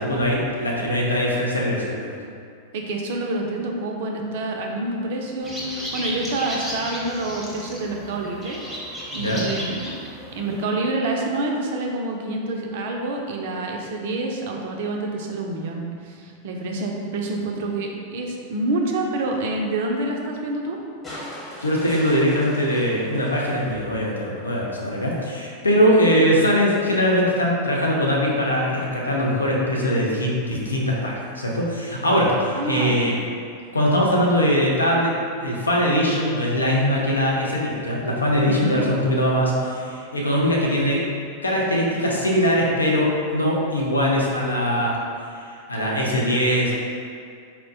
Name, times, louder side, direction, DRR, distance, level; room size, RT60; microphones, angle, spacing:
voice 1, 0.0-2.2 9.2-9.4 21.6-33.1 33.7-35.1 35.4-41.0 41.4-44.9 45.4-46.7, equal, 80° left, -3 dB, 0.5 m, -21 dB
voice 2, 2.7-8.6 9.1-9.9 10.3-20.8 25.9-26.1 32.5-33.1 38.4-38.8, right 2 dB, 55° right, 1 dB, 0.4 m, -27 dB
sound 1, 5.4-10.6, equal, 5° right, 0.7 m, -34 dB
sound 2, 21.0-24.3 25.7-25.8, left 1 dB, 15° left, 1.0 m, -39 dB
4.2 x 2.1 x 2.7 m, 2.3 s
figure-of-eight pair, 90°, 0 cm